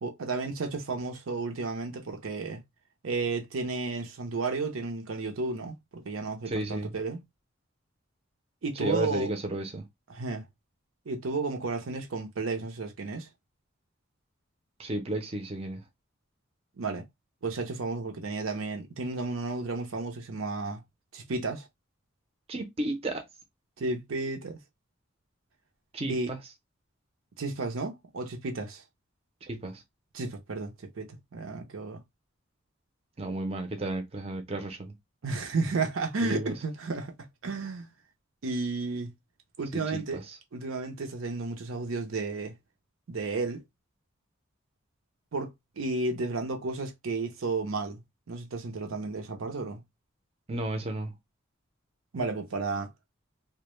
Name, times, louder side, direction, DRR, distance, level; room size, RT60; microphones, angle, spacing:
voice 1, 0.0-2.6 3.0-7.2 8.6-9.3 10.1-10.4 11.1-13.3 16.8-17.0 17.4-20.8 21.1-21.7 23.8-24.6 26.1-26.3 27.4-28.8 30.1-32.0 35.2-37.1 37.4-37.9 38.4-39.1 39.6-40.2 40.5-42.5 43.1-43.6 45.3-48.0 48.3-49.8 52.1-52.9, right 3 dB, 80° right, 0.6 m, -32 dB
voice 2, 6.5-6.9 8.8-9.8 14.8-15.8 22.5-23.2 25.9-26.4 29.5-29.8 33.2-34.9 36.2-36.5 39.7-40.4 50.5-51.2, right 1 dB, 30° right, 0.5 m, -33 dB
2.1 x 2.0 x 3.0 m
head